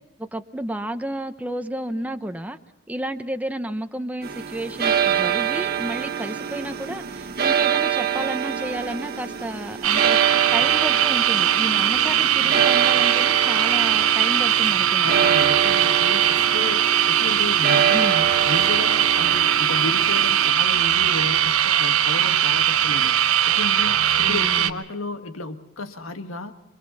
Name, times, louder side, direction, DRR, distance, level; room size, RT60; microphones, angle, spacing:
voice 1, 0.2-2.6 2.9-15.2 17.9-18.2 24.2-24.8, right 1 dB, 5° right, 7 dB, 0.9 m, -31 dB
sound 1, 4.2-20.5, right 8 dB, 50° right, 1.5 m, -25 dB
sound 2, 9.8-24.7, right 10 dB, 85° right, 1.0 m, -20 dB
voice 2, 15.0-26.5, left 2 dB, 70° left, 7 dB, 1.8 m, -33 dB
27.5 x 23.5 x 4.2 m, 0.96 s
head